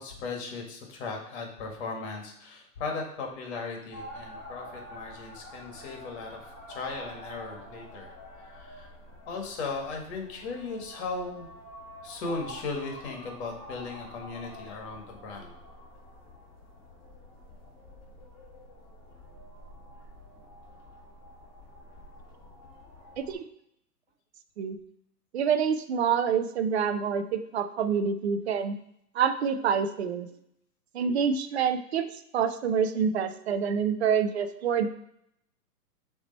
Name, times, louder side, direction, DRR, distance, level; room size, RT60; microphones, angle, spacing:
voice 1, 0.0-6.4 6.7-8.1 8.5-8.9 9.3-11.5 12.0-15.5, left 3 dB, 45° left, 1 dB, 1.8 m, -37 dB
sound 1, 3.9-23.4, left 1 dB, 20° left, 1.7 m, -47 dB
voice 2, 25.3-28.8 29.1-30.3 30.9-34.9, right 7 dB, 45° right, 9 dB, 0.5 m, -27 dB
7.1 x 3.4 x 4.0 m, 0.75 s
hypercardioid pair, 150°, 48 cm